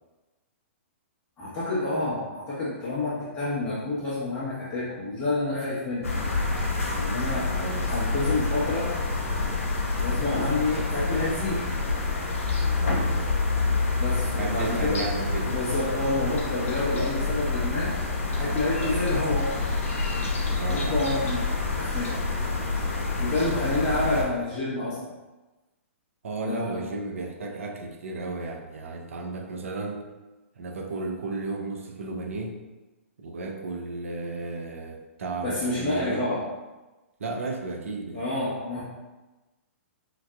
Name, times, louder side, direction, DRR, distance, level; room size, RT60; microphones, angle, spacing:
voice 1, 1.4-6.1 7.0-7.5 7.9-8.9 10.0-11.6 14.0-15.0 15.4-17.9 18.3-19.5 20.7-21.5 21.7-22.2 23.2-25.0 26.5-26.8 35.4-36.4 38.1-38.8, left 2 dB, 25° left, -11 dB, 1.2 m, -28 dB
sound 1, 6.0-24.2, left 3 dB, 75° left, 0.7 m, -27 dB
voice 2, 7.5-7.9 12.8-13.4 14.4-15.5 20.5-21.0 26.2-30.0 30.6-32.6 33.2-36.3 37.2-38.2, right 3 dB, 75° right, 3 dB, 0.6 m, -34 dB
4.0 x 2.6 x 2.3 m, 1.1 s
hypercardioid pair, 125°, 7 cm